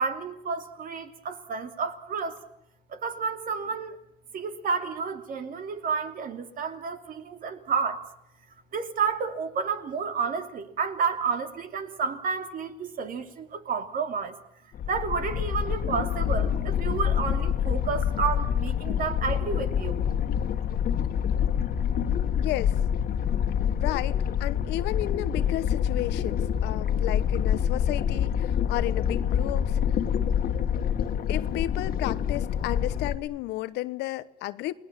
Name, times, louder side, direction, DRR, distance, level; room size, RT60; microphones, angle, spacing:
voice 1, 0.0-2.4 2.9-4.0 4.3-8.0 8.7-14.4 14.9-20.0, right 5 dB, 55° right, 2.8 m, -30 dB
sound 1, 14.7-33.2, left 8 dB, 60° left, 1.8 m, -26 dB
voice 2, 22.4-22.7 23.7-30.0 31.3-34.7, left 16 dB, 85° left, 1.0 m, -33 dB
29.0 x 20.0 x 7.4 m
cardioid pair, 110°, 17 cm